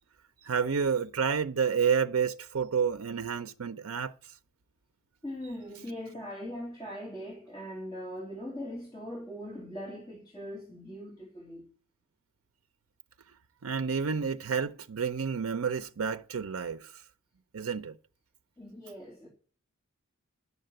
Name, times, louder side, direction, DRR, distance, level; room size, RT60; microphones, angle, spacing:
voice 1, 0.4-4.1 13.6-16.9 17.5-17.9, right 6 dB, 75° right, 0.5 m, -29 dB
voice 2, 5.2-11.7 18.6-19.3, equal, 20° left, 2.9 m, -41 dB
11.0 x 6.7 x 7.7 m
head